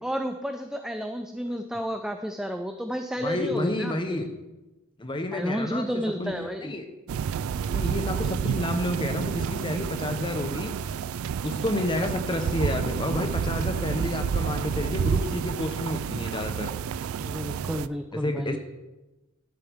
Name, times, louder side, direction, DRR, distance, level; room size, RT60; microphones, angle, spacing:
voice 1, 0.0-4.2 5.3-6.7 17.2-18.6, equal, 5° right, 6 dB, 0.3 m, -31 dB
voice 2, 3.2-4.3 5.0-6.3 6.6-6.9 7.7-10.9 11.4-16.7 18.1-18.6, left 1 dB, 25° left, 6 dB, 0.9 m, -30 dB
sound 1, 7.1-17.9, right 7 dB, 75° right, 0.3 m, -29 dB
12.0 x 7.8 x 3.5 m, 1.1 s
head